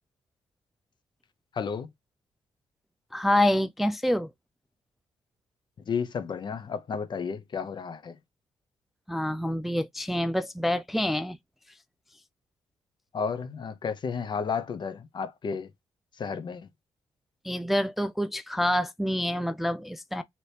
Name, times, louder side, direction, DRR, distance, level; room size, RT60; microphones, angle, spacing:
voice 1, 1.5-1.9 5.9-8.2 13.1-15.7 16.2-16.7, left 6 dB, 50° left, 0.6 m, -32 dB
voice 2, 3.1-4.3 9.1-11.4 17.4-20.2, left 1 dB, ahead, 0.3 m, -27 dB
3.2 x 2.9 x 2.7 m
cardioid pair, 85°, 10 cm